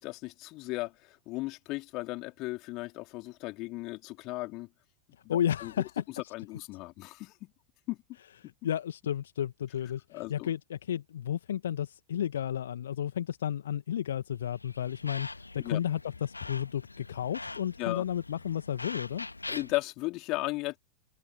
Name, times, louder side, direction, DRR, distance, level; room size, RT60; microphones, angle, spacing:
voice 1, 0.0-4.7 5.2-5.7 6.3-7.5 7.9-8.0 10.1-10.5 15.6-15.8 17.8-18.0 19.5-20.8, left 21 dB, 40° left, 3.7 m, -36 dB
voice 2, 5.3-6.3 8.6-19.3, left 10 dB, 65° left, 1.6 m, -32 dB
sound 1, 14.4-19.8, left 2 dB, 80° left, 1.8 m, -43 dB
figure-of-eight pair, 90°, 0 cm